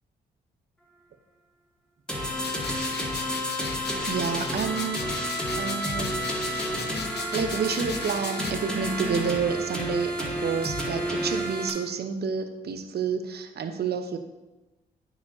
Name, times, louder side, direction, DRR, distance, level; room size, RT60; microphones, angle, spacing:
sound 1, 2.1-11.7, equal, 5° left, 2.2 m, -30 dB
sound 2, 2.4-8.5, left 5 dB, 55° left, 0.8 m, -38 dB
voice 1, 4.0-6.2 7.3-10.1 10.4-14.2, right 6 dB, 55° right, 8 dB, 0.8 m, -29 dB
9.1 x 7.1 x 2.7 m, 1.1 s
hypercardioid pair, 50°, 20 cm